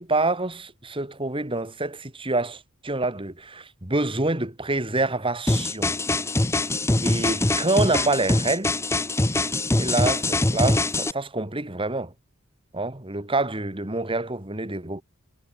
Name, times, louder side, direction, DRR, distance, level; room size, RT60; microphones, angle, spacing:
voice 1, 0.0-6.0 7.0-8.7 9.7-12.1 12.7-15.0, right 2 dB, 25° right, 2.4 m, -27 dB
sound 1, 5.5-11.1, left 2 dB, 10° left, 0.7 m, -23 dB
head